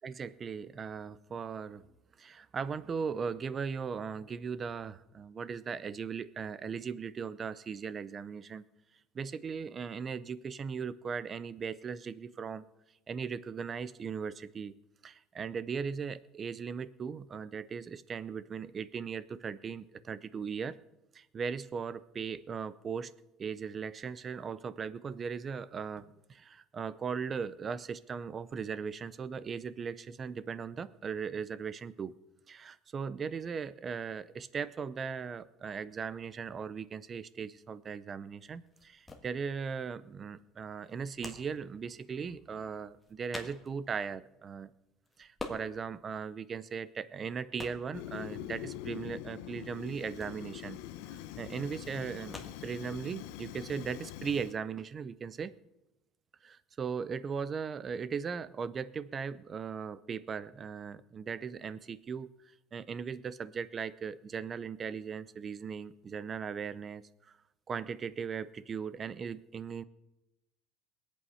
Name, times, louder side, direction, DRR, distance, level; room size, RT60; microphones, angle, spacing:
voice 1, 0.0-1.8 2.2-8.6 9.1-12.7 13.1-14.7 15.0-20.8 21.1-23.1 23.4-32.1 32.5-44.7 45.2-50.8 51.1-52.4 52.6-55.5 56.4-62.3 62.7-67.4 67.7-69.8, right 6 dB, 25° right, 17 dB, 0.5 m, -38 dB
sound 1, 37.3-53.5, left 2 dB, 10° left, 1.5 m, -50 dB
Fire, 47.9-54.6, left 13 dB, 80° left, 0.7 m, -44 dB
21.5 x 8.4 x 5.6 m, 0.91 s
cardioid pair, 160°, 0 cm